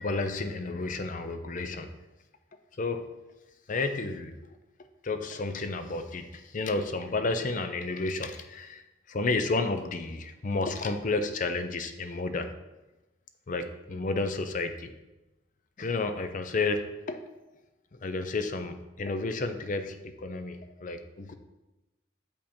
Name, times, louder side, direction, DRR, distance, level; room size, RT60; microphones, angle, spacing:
voice 1, 0.0-1.9 2.8-3.1 3.7-4.6 5.0-8.8 9.1-12.5 13.5-14.9 15.8-17.2 18.0-21.3, left 3 dB, 40° left, 9 dB, 0.5 m, -31 dB
7.0 x 5.3 x 4.3 m, 1.0 s
head